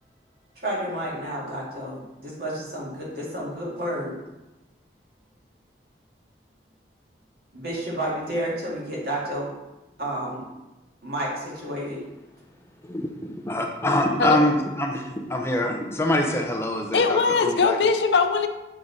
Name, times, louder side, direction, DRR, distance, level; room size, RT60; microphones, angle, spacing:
voice 1, 0.6-4.2 7.5-9.5 10.0-10.4 11.0-12.0, right 1 dB, 55° right, -4 dB, 2.0 m, -30 dB
voice 2, 12.8-17.8, left 1 dB, 15° left, 2 dB, 0.6 m, -25 dB
voice 3, 16.9-18.5, left 4 dB, 75° left, 7 dB, 0.6 m, -21 dB
7.7 x 3.7 x 4.0 m, 1.0 s
head